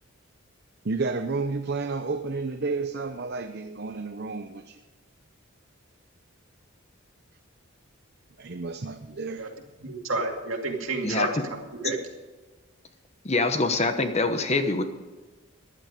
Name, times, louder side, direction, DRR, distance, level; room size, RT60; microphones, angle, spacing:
voice 1, 0.8-4.8 8.4-9.5, right 3 dB, 50° right, 7 dB, 0.7 m, -31 dB
voice 2, 9.8-12.0, right 3 dB, 70° right, 2 dB, 2.3 m, -30 dB
voice 3, 13.2-14.8, left 3 dB, 30° left, 8 dB, 1.0 m, -24 dB
15.0 x 11.0 x 5.1 m, 1.3 s
head